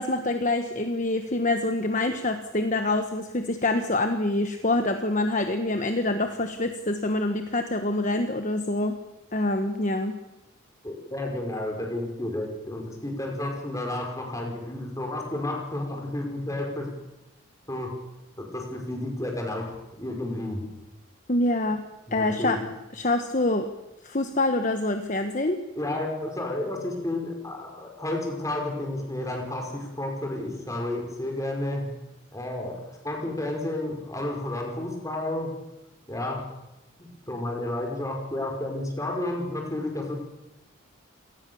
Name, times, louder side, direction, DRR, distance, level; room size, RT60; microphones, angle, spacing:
voice 1, 0.0-9.0 9.3-10.2 21.3-21.8 22.1-22.6 22.9-23.7 24.0-25.6, left 2 dB, 35° left, 7 dB, 1.3 m, -26 dB
voice 2, 10.8-16.9 17.7-18.0 18.4-19.7 20.0-20.6 22.1-22.6 25.8-31.9 32.3-35.5 36.1-36.4 37.0-40.2, left 1 dB, 15° left, 1 dB, 5.3 m, -31 dB
27.5 x 19.0 x 7.1 m, 0.97 s
head